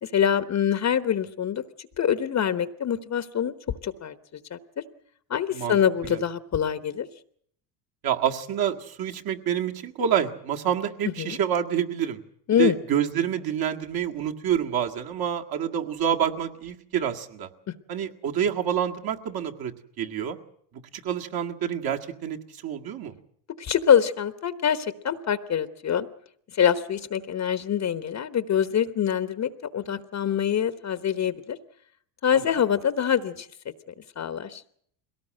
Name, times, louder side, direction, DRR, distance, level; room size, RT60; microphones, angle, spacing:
voice 1, 0.0-4.8 5.3-7.1 11.2-11.4 12.5-12.8 17.7-17.8 23.6-26.1 26.5-31.6 32.2-33.5 34.2-34.6, left 8 dB, 35° left, 12 dB, 1.1 m, -25 dB
voice 2, 8.0-12.2 12.6-17.5 17.9-20.4 21.0-23.1 32.3-32.4, right 9 dB, 45° right, 3 dB, 2.0 m, -27 dB
22.0 x 18.0 x 7.6 m, 0.65 s
supercardioid pair, 95°, 50 cm